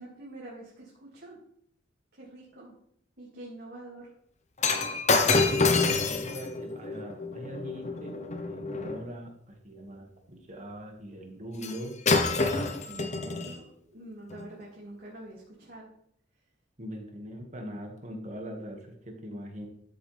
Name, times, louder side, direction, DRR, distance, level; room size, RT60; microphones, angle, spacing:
voice 1, 0.0-1.4 2.1-2.7 3.2-4.1 12.9-15.9, right 1 dB, 60° right, -5 dB, 2.6 m, -46 dB
Shatter, 4.6-9.0 11.6-11.8 12.1-13.6 14.3-14.4, left 3 dB, 40° left, 1.0 m, -27 dB
voice 2, 5.3-8.2 8.5-11.9 16.8-19.7, equal, 40° right, 2 dB, 2.0 m, -41 dB
13.0 x 6.9 x 3.5 m, 0.68 s
head